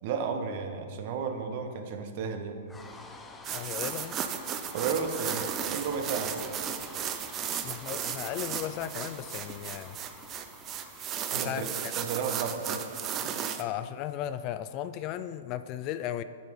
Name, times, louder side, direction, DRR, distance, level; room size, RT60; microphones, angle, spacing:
voice 1, 0.0-2.6 4.7-6.5 11.3-12.9 13.2-13.3, right 5 dB, 50° right, 6 dB, 1.1 m, -33 dB
sound 1, 2.7-12.9, left 3 dB, 10° left, 0.8 m, -49 dB
sound 2, 3.4-13.6, right 8 dB, 30° right, 0.6 m, -35 dB
voice 2, 3.5-4.2 7.6-10.0 11.3-11.9 13.6-16.2, left 11 dB, 35° left, 12 dB, 0.4 m, -36 dB
9.1 x 7.0 x 5.2 m, 2.2 s
hypercardioid pair, 130°, 0 cm